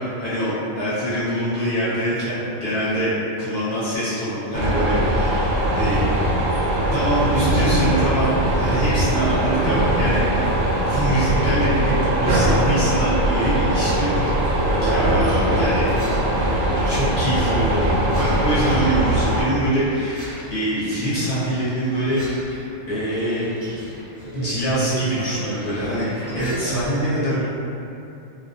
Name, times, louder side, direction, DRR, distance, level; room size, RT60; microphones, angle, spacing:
voice 1, 0.0-6.0 6.9-14.1 14.8-15.9 16.9-23.5 24.3-27.4, right 1 dB, 50° left, -11 dB, 0.8 m, -24 dB
sound 1, 4.5-19.4, right 1 dB, 80° right, 0.9 m, -20 dB
sound 2, 13.1-26.9, equal, 40° right, 0.4 m, -39 dB
2.3 x 2.1 x 2.5 m, 2.7 s
omnidirectional pair, 1.3 m